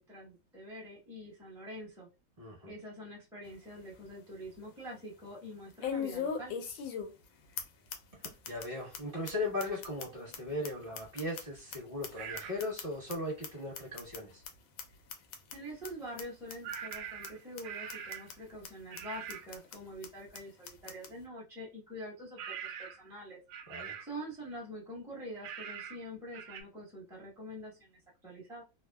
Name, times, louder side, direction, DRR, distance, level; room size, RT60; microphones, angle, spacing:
voice 1, 0.0-2.1 2.7-6.5 15.5-23.4 24.0-28.6, equal, 5° right, -6 dB, 0.5 m, -45 dB
voice 2, 2.4-2.7 8.1-14.4 23.7-23.9, left 2 dB, 35° right, -3 dB, 1.3 m, -38 dB
sound 1, 3.4-3.5 4.0-4.1 5.8-7.3 7.6-7.7 7.9-8.0 8.2-8.6 8.9-9.0 9.3-9.4 9.6-11.8 12.0-13.1 13.4-13.5 13.7-14.2 14.4-14.5 14.8-14.9 15.1-15.5 15.8-15.9 16.2-16.3 16.5-17.0 17.2-17.3 17.6-17.7 17.9-18.3 18.6-18.7 19.0-19.1 19.3-19.8 20.0-20.1 20.3-20.4 20.6-21.1, left 7 dB, 90° left, 1.4 m, -39 dB
sound 2, 12.2-12.6 16.6-18.4 18.9-19.5 22.4-23.1 23.5-24.2 25.4-26.0 26.3-26.6, right 8 dB, 75° right, 0.9 m, -43 dB
3.5 x 2.0 x 2.2 m, 0.29 s
omnidirectional pair, 2.1 m